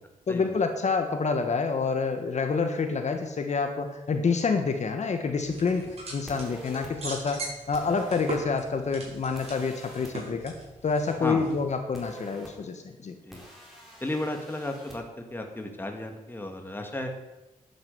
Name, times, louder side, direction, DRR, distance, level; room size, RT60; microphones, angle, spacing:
voice 1, 0.3-5.8 6.1-10.5 10.8-13.1, left 4 dB, 55° left, 6 dB, 1.5 m, -27 dB
sound 1, 5.4-11.7, right 2 dB, 45° right, 5.5 m, -41 dB
sound 2, 6.3-6.9 7.7-8.4 9.4-10.1 11.9-12.5 13.3-15.0, equal, ahead, 4.4 m, -45 dB
voice 2, 11.2-11.5 13.3-13.4 14.0-17.1, left 1 dB, 15° left, 3 dB, 2.1 m, -34 dB
11.0 x 8.8 x 8.0 m, 1.1 s
wide cardioid pair, 105°, 14 cm